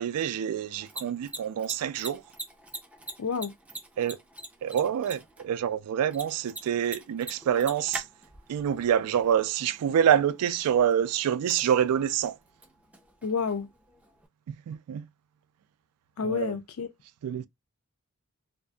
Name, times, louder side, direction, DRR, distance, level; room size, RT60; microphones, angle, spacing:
voice 1, 0.0-2.2 4.0-4.2 4.6-8.1 8.5-12.4 14.5-15.1 16.2-16.6 17.2-17.5, right 9 dB, 85° right, 0.3 m, -26 dB
Mechanisms, 0.6-14.3, right 2 dB, 5° right, 0.3 m, -45 dB
voice 2, 3.2-3.5 13.2-13.7 16.2-16.9, left 5 dB, 70° left, 0.4 m, -29 dB
2.6 x 2.4 x 2.2 m
head